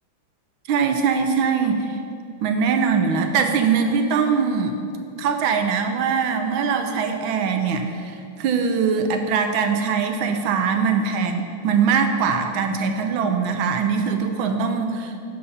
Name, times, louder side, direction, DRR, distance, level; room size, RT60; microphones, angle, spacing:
voice 1, 0.7-2.0 2.4-4.7 5.2-15.3, right 5 dB, 80° right, 6 dB, 1.5 m, -22 dB
12.0 x 4.2 x 5.5 m, 2.5 s
omnidirectional pair, 2.2 m